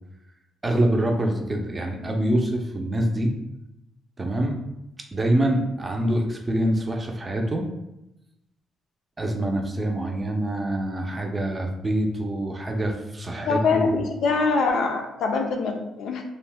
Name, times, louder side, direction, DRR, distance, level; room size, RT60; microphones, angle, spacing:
voice 1, 0.6-3.3 4.2-4.6 5.1-7.7 9.2-14.0, right 1 dB, 25° right, 2 dB, 0.5 m, -25 dB
voice 2, 13.5-16.2, left 4 dB, 75° left, 3 dB, 0.4 m, -24 dB
2.5 x 2.2 x 3.3 m, 0.89 s
cardioid pair, 90°, 0 cm